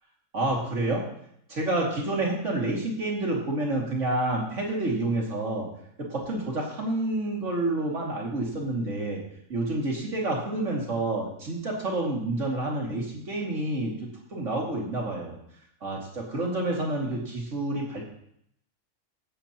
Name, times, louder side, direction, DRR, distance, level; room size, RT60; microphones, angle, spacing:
voice 1, 0.3-1.0 1.5-5.7 6.0-9.2 9.5-15.4 15.8-18.0, right 2 dB, 60° right, -3 dB, 2.9 m, -29 dB
15.5 x 7.9 x 3.0 m, 0.71 s
omnidirectional pair, 1.4 m